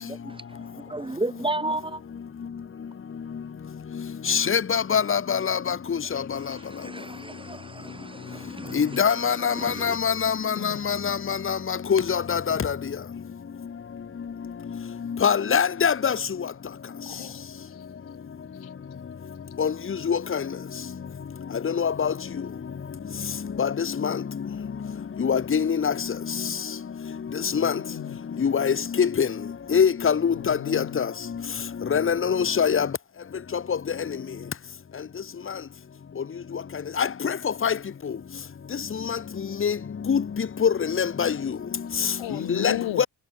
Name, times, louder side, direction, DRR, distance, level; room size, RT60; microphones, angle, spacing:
voice 1, 0.0-2.0 4.4-4.5 6.3-10.0, right 2 dB, 10° right, 1.3 m, -34 dB
voice 2, 4.3-5.7 8.8-11.6 11.9-12.7 15.2-16.2 19.6-19.7 20.1-20.2 21.8-22.1 23.6-23.7 24.0-24.1 25.2-25.9 27.6-27.7 28.4-29.3 29.7-31.0 31.9-32.9 37.0-37.1 37.6-37.7 39.6-39.7 40.1-40.2 40.6-41.3 42.6-42.7 43.0-43.1, left 7 dB, 25° left, 1.2 m, -23 dB
voice 3, 6.0-6.7 10.6-10.8 17.1-17.4 17.7-17.8 18.6-18.7 27.5-28.2 30.3-31.1 42.2-43.1, left 14 dB, 90° left, 1.8 m, -36 dB
cardioid pair, 150°, 46 cm